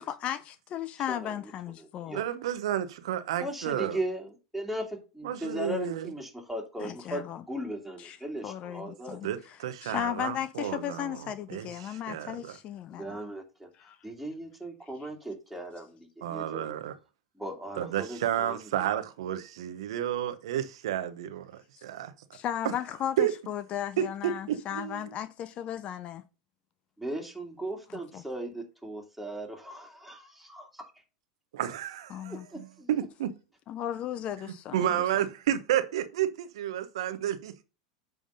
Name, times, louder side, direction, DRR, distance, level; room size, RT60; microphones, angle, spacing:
voice 1, 0.0-2.2 6.8-7.4 8.0-8.2 8.4-9.3 9.8-13.2 13.8-14.0 22.3-26.2 28.1-28.2 32.1-32.5 33.7-35.0, left 11 dB, 40° left, 0.6 m, -35 dB
voice 2, 1.1-1.5 1.8-2.2 3.4-9.2 12.9-13.7 14.0-16.7 17.3-18.7 27.0-30.9 32.2-32.9, right 1 dB, ahead, 2.4 m, -38 dB
voice 3, 2.1-4.0 5.2-6.1 9.2-12.6 16.2-16.9 17.8-22.1 22.6-22.7 23.2-23.3 24.0-25.1 31.5-33.3 34.7-37.6, right 11 dB, 75° right, 0.9 m, -31 dB
9.2 x 3.6 x 5.4 m
hypercardioid pair, 95°, 3 cm